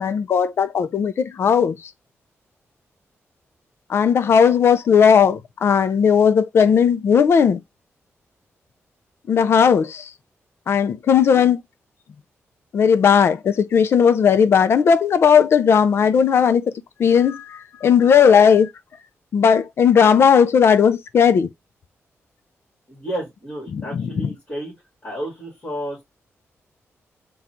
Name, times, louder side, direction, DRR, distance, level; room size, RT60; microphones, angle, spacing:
voice 1, 0.0-1.8 3.9-7.6 9.3-10.1 10.7-11.6 12.7-18.7 19.3-21.5 23.7-24.1, left 7 dB, 55° left, 0.4 m, -16 dB
voice 2, 22.9-24.7 25.0-26.0, right 1 dB, 25° left, 1.9 m, -31 dB
3.8 x 2.3 x 4.2 m
wide cardioid pair, 160°, 5 cm